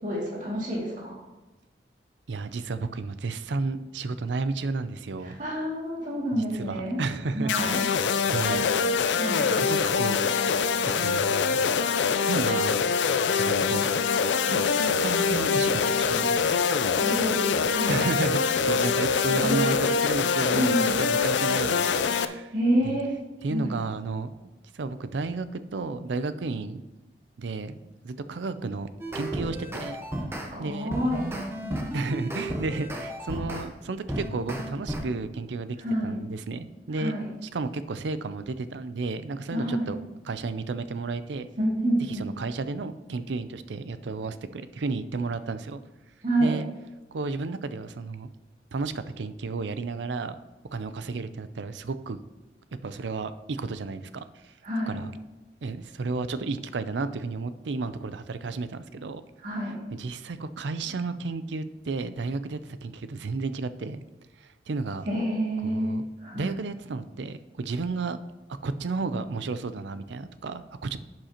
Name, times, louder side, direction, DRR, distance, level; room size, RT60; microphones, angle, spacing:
voice 1, 0.0-1.2 5.2-7.0 7.3-7.8 8.5-9.4 16.7-17.4 17.7-18.1 19.4-19.7 20.5-20.9 22.5-23.1 23.5-23.7 30.3-31.2 35.8-36.2 36.9-37.2 39.5-39.9 41.6-42.3 46.2-46.6 54.6-55.0 59.4-59.7 65.1-65.9 66.2-66.6, right 1 dB, 45° right, -5 dB, 2.4 m, -28 dB
voice 2, 2.3-5.4 6.3-7.8 8.3-8.6 9.4-10.4 11.0-11.6 12.3-12.8 13.4-13.8 14.5-16.5 17.9-22.5 22.8-23.0 23.4-24.3 24.7-26.8 27.4-30.0 30.6-30.9 31.9-35.8 36.0-37.1 37.4-41.5 42.1-45.8 46.4-46.7 47.1-48.3 48.7-50.4 50.7-52.2 52.8-54.5 54.9-55.1 55.6-59.2 59.9-64.0 64.4-65.1 65.6-66.0 66.3-68.2 68.6-71.0, right 3 dB, 85° right, 12 dB, 0.5 m, -32 dB
sound 1, 7.5-22.3, left 5 dB, 90° left, 0.5 m, -24 dB
sound 2, 29.0-30.5 30.9-33.7 34.1-35.0, right 1 dB, 15° right, 0.9 m, -33 dB
11.5 x 7.6 x 2.9 m, 1.1 s
head